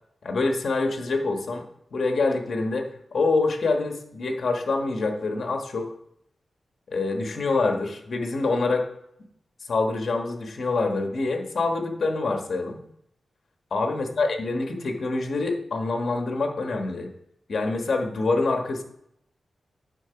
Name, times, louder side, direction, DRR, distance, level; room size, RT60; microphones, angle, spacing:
voice 1, 0.2-1.6 1.9-5.9 6.9-8.9 9.7-12.8 13.7-17.1 17.5-18.8, left 3 dB, 55° left, 3 dB, 1.3 m, -26 dB
9.0 x 4.0 x 5.8 m, 0.76 s
wide cardioid pair, 130°, 0 cm